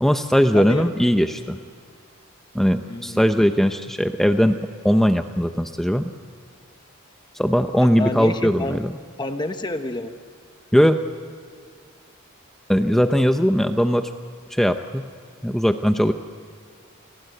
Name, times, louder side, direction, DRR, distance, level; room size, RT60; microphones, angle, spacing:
voice 1, 0.0-1.6 2.5-6.1 7.4-8.9 10.7-11.0 12.7-14.1 14.5-15.1 15.4-16.1, equal, ahead, 7 dB, 0.7 m, -19 dB
voice 2, 0.5-0.9 2.9-3.3 8.0-8.8 9.2-10.2, left 2 dB, 20° left, 7 dB, 1.1 m, -28 dB
30.0 x 21.0 x 7.8 m, 2.2 s
head